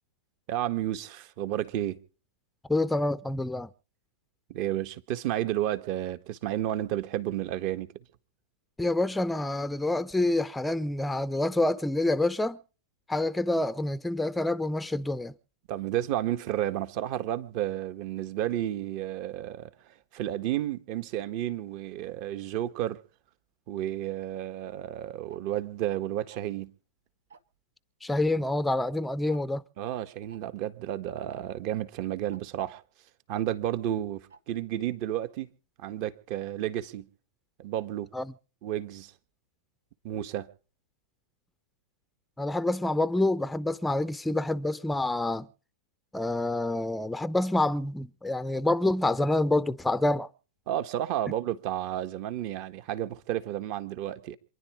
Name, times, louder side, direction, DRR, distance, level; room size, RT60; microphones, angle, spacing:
voice 1, 0.5-2.0 4.5-7.9 15.7-23.0 23.7-26.7 29.8-32.8 33.3-35.5 35.8-37.1 37.6-38.1 38.6-39.1 40.0-40.5 50.7-54.4, right 12 dB, 45° right, 1.5 m, -32 dB
voice 2, 2.7-3.7 8.8-12.6 13.1-15.3 28.0-29.6 38.1-38.2 42.4-45.5 46.1-50.3, left 2 dB, 5° left, 0.6 m, -27 dB
Tick-tock, 25.3-25.4 26.3-26.6 27.3-27.6 28.3-28.4 28.7-28.8 29.3-29.4 30.3-30.4 31.3-31.4 32.3-32.4 33.3-33.4 34.3-34.4, right 5 dB, 70° right, 1.5 m, -52 dB
27.5 x 11.0 x 3.6 m
figure-of-eight pair, 100°, 0 cm